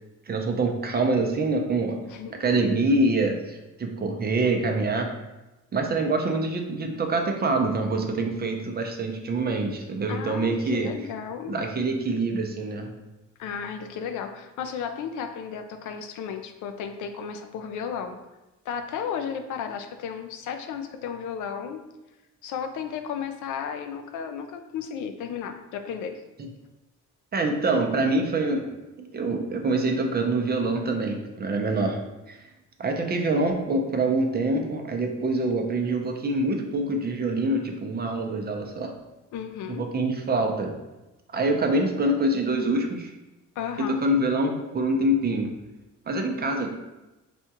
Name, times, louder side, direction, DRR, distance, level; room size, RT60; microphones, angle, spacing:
voice 1, 0.3-2.0 2.4-5.1 5.7-10.9 11.5-12.9 27.3-28.7 29.0-32.0 32.3-32.4 32.8-38.9 39.7-40.7 41.3-43.1 43.8-45.5 46.1-46.7, right 2 dB, 30° right, 3 dB, 0.5 m, -25 dB
voice 2, 10.1-11.5 13.4-18.2 18.7-21.8 22.4-26.2 39.3-39.9 43.6-44.0, left 7 dB, 80° left, 7 dB, 0.5 m, -34 dB
4.2 x 2.3 x 2.8 m, 1.0 s
cardioid pair, 90°, 30 cm